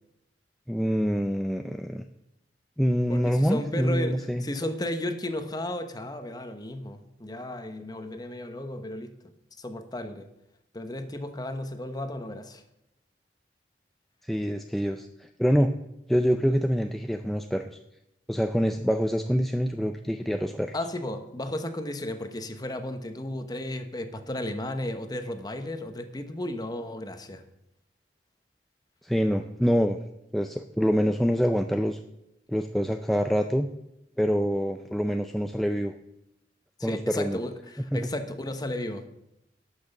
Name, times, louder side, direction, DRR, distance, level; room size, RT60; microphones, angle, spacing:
voice 1, 0.7-2.0 2.8-4.4 14.2-15.7 16.1-17.7 18.3-20.8 29.0-30.0 30.3-32.0 32.5-33.7 34.2-36.0 36.8-37.4 37.9-38.1, equal, ahead, 5 dB, 0.4 m, -25 dB
voice 2, 3.1-9.1 9.6-10.3 10.7-12.6 20.7-27.4 36.8-39.1, left 1 dB, 20° left, 8 dB, 1.0 m, -34 dB
12.0 x 6.1 x 7.1 m, 0.85 s
head